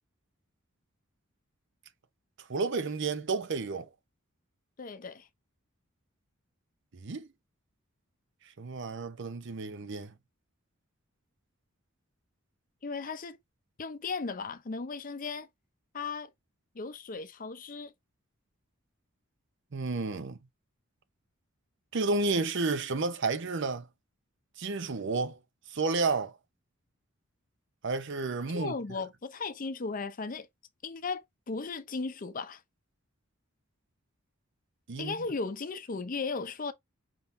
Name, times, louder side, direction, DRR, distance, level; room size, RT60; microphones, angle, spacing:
voice 1, 2.5-3.9 7.0-7.3 8.6-10.1 19.7-20.4 21.9-23.9 24.6-25.4 25.7-26.4 27.8-28.7 34.9-35.1, right 3 dB, 60° right, 0.7 m, -31 dB
voice 2, 4.8-5.3 12.8-13.4 13.8-15.5 15.9-16.3 16.7-17.9 28.5-30.5 30.8-32.6 35.0-36.7, left 4 dB, 40° left, 0.5 m, -36 dB
5.4 x 3.8 x 2.6 m
head